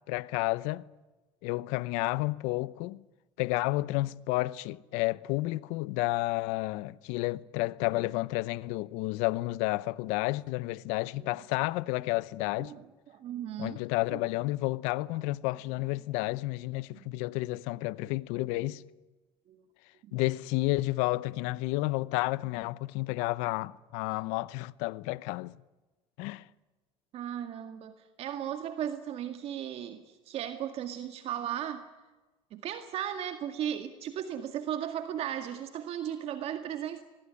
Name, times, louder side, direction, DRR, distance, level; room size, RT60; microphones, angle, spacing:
voice 1, 0.1-0.8 1.4-3.0 3.4-12.7 13.6-18.8 20.1-25.5 26.2-26.4, left 20 dB, 80° left, 0.8 m, -31 dB
voice 2, 12.6-13.8 14.1-14.2 15.0-15.2 16.9-17.2 18.1-18.2 18.4-18.8 19.5-19.6 20.0-20.2 27.1-31.8 32.5-37.0, right 10 dB, 55° right, 2.0 m, -36 dB
24.5 x 20.5 x 10.0 m
supercardioid pair, 110°, 12 cm